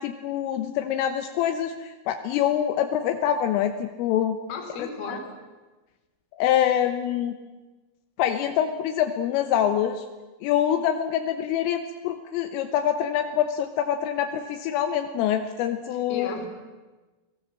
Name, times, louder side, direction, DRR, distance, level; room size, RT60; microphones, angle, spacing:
voice 1, 0.0-4.4 4.8-5.2 6.4-7.4 8.2-10.1 10.4-16.3, left 10 dB, 85° left, 6 dB, 3.6 m, -25 dB
voice 2, 4.5-5.3 15.9-16.5, left 3 dB, 55° left, 4 dB, 4.9 m, -35 dB
29.0 x 19.0 x 7.6 m, 1.2 s
omnidirectional pair, 5.8 m